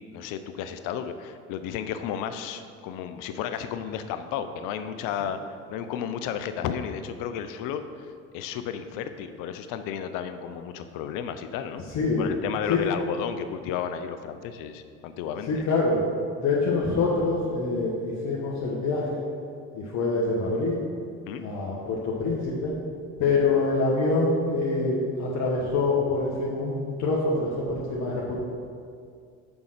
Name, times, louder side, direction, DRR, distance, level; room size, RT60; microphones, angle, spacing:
voice 1, 0.1-5.4 5.7-7.8 8.3-11.9 12.2-15.6 21.3-21.5, left 8 dB, 70° left, 10 dB, 0.7 m, -33 dB
voice 2, 11.9-12.3 12.7-12.8 15.5-16.0 16.4-19.2 19.7-20.8 21.4-22.7 23.2-28.4, left 3 dB, 55° left, -4 dB, 1.5 m, -25 dB
7.0 x 5.5 x 6.6 m, 2.3 s
supercardioid pair, 80°, 34 cm